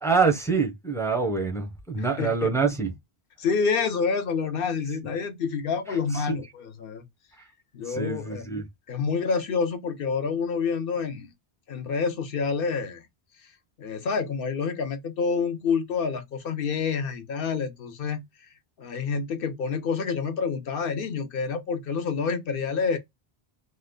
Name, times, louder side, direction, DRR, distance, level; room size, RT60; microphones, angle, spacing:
voice 1, 0.0-2.9 5.9-6.4 7.8-8.6, right 4 dB, 5° left, 0.4 m, -26 dB
voice 2, 2.2-2.5 3.4-7.0 7.7-8.5 8.9-11.3 11.7-13.1 13.8-18.2 18.8-23.0, left 5 dB, 65° left, 0.8 m, -28 dB
3.0 x 2.1 x 3.6 m
omnidirectional pair, 1.1 m